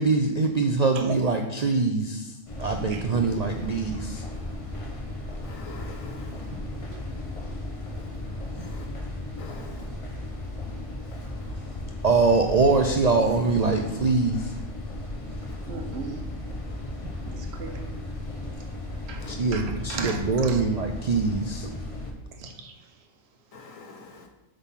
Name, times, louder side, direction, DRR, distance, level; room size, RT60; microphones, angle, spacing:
voice 1, 0.0-2.3 2.6-4.2 12.0-14.5 19.3-21.7, right 3 dB, 80° right, 0.3 m, -23 dB
sound 1, 2.5-22.1, left 1 dB, 30° left, 0.8 m, -35 dB
voice 2, 5.4-6.3 8.6-8.9 9.4-9.8 11.1-11.3 19.2-19.3 23.5-24.3, left 4 dB, 70° left, 1.4 m, -45 dB
voice 3, 15.7-16.2 17.3-17.9 19.1-19.2 19.5-19.6 19.9-20.2 20.4-20.6 22.4-22.7, right 5 dB, 55° right, 1.1 m, -36 dB
8.1 x 3.8 x 5.7 m
omnidirectional pair, 1.4 m